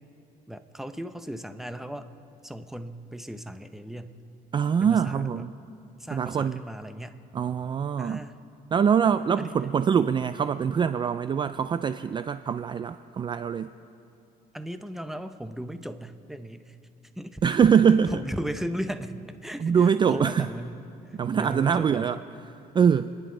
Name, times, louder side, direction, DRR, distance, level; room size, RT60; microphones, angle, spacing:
voice 1, 0.5-2.1 2.4-4.1 4.8-5.5 6.0-7.2 8.0-8.4 9.4-9.5 14.5-16.8 17.2-17.5 18.1-20.8 21.1-22.2, equal, ahead, 9 dB, 0.7 m, -36 dB
voice 2, 4.5-5.5 6.1-6.6 7.3-8.2 8.7-13.7 17.4-18.1 19.6-20.5 21.2-22.2 22.5-23.1, right 7 dB, 30° right, 11 dB, 0.4 m, -23 dB
28.0 x 10.5 x 3.8 m, 2.8 s
cardioid pair, 110°, 17 cm